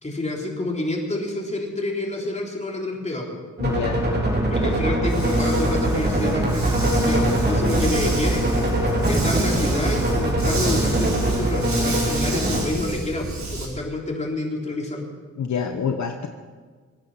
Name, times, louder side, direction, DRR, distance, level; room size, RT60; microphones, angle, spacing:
voice 1, 0.0-3.4 4.5-8.5 9.1-15.0, left 2 dB, 20° left, -1 dB, 3.8 m, -28 dB
voice 2, 3.6-4.0 15.4-16.3, left 6 dB, 65° left, 5 dB, 1.1 m, -26 dB
sound 1, 3.6-12.7, right 1 dB, 30° right, 3.7 m, -22 dB
Dog, 5.1-13.7, right 3 dB, 60° right, 4.4 m, -30 dB
23.0 x 9.8 x 5.8 m, 1.5 s
cardioid pair, 80°, 31 cm